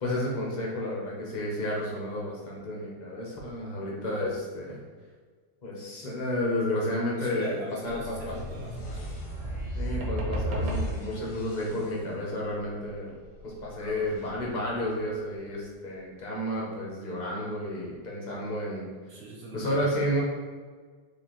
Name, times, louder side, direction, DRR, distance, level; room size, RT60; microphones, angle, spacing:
voice 1, 0.0-4.8 5.6-8.4 9.8-13.1 13.4-18.9 19.5-20.2, left 1 dB, 40° left, -4 dB, 0.6 m, -31 dB
voice 2, 7.2-9.1 13.7-14.1 19.1-19.9, right 1 dB, 65° right, -2 dB, 0.6 m, -42 dB
sound 1, 7.9-15.7, equal, 65° left, 1.2 m, -43 dB
sound 2, 8.0-11.6 13.4-13.5, equal, 90° right, 1.3 m, -33 dB
4.9 x 2.4 x 2.9 m, 1.5 s
omnidirectional pair, 1.7 m